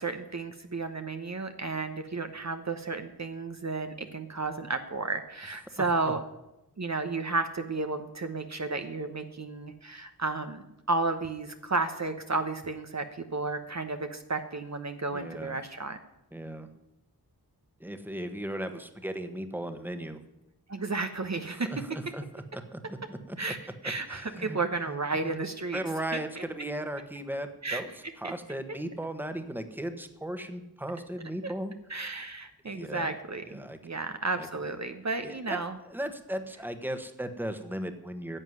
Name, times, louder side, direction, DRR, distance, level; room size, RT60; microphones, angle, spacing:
voice 1, 0.0-6.2 6.8-13.1 13.3-16.0 20.7-21.7 23.4-23.6 23.8-25.8 26.1-26.4 27.6-27.8 31.4-31.5 31.9-35.8, right 3 dB, 45° right, 7 dB, 1.0 m, -32 dB
voice 2, 15.1-15.6 16.3-16.7 17.8-20.2 21.5-23.4 24.1-24.6 24.9-25.0 25.7-31.7 32.2-32.3 32.6-33.1 33.4-33.8 34.3-34.5 35.2-35.6 35.8-38.4, right 1 dB, 5° right, 8 dB, 1.4 m, -36 dB
11.0 x 7.2 x 9.6 m, 0.91 s
wide cardioid pair, 55°, 39 cm